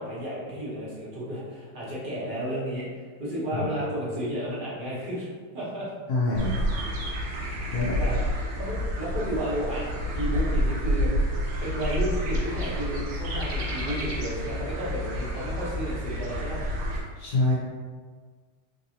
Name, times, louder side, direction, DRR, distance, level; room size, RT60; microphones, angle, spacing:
voice 1, 0.0-5.9 7.4-7.5 8.0-8.2 8.6-16.6, equal, 40° right, -8 dB, 0.7 m, -32 dB
voice 2, 6.1-6.7 7.7-8.0 17.2-17.5, left 2 dB, 80° left, -7 dB, 0.7 m, -25 dB
sound 1, 6.3-17.0, equal, 75° right, 1.5 m, -29 dB
3.7 x 2.7 x 2.8 m, 1.5 s
omnidirectional pair, 2.4 m